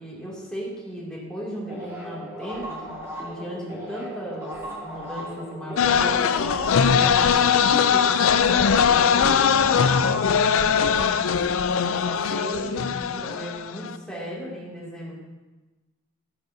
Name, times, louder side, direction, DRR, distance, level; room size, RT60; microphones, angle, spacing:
voice 1, 0.0-2.9 3.2-4.5 4.8-7.5 7.9-11.4 11.9-15.1, equal, 5° left, -7 dB, 2.5 m, -36 dB
sound 1, 1.7-10.8, equal, 15° right, 1.9 m, -37 dB
sound 2, 5.8-14.0, left 7 dB, 65° left, 0.4 m, -21 dB
12.0 x 10.5 x 2.7 m, 1.2 s
head